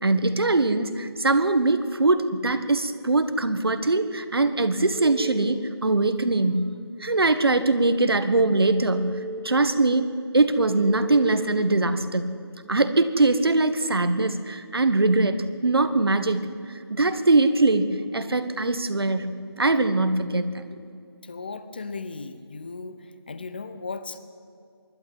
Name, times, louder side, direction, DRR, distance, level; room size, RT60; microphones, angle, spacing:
voice 1, 0.0-6.7 7.0-9.2 9.4-10.1 10.3-12.4 12.7-16.4 16.9-19.3 19.6-20.6, right 2 dB, 65° right, 11 dB, 1.4 m, -22 dB
Telephone, 4.9-5.4 8.4-9.4 10.6-11.5, right 4 dB, ahead, 1.1 m, -34 dB
voice 2, 21.2-24.2, left 4 dB, 20° left, 12 dB, 0.7 m, -36 dB
24.5 x 11.5 x 9.5 m, 2.4 s
figure-of-eight pair, 170°, 14 cm